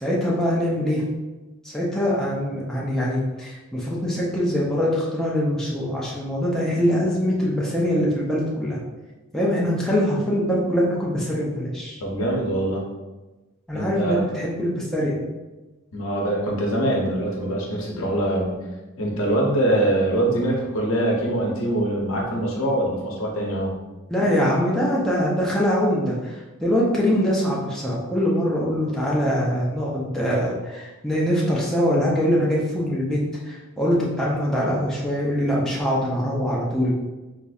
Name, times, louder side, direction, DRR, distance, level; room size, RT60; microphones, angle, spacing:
voice 1, 0.0-1.0 1.6-8.8 9.3-12.0 13.7-15.2 24.1-26.4 26.6-36.9, equal, ahead, -6 dB, 0.5 m, -23 dB
voice 2, 12.0-12.8 13.7-14.2 15.9-18.6 19.0-23.7, right 1 dB, 65° left, -2 dB, 0.8 m, -23 dB
4.0 x 2.6 x 2.3 m, 1.1 s
head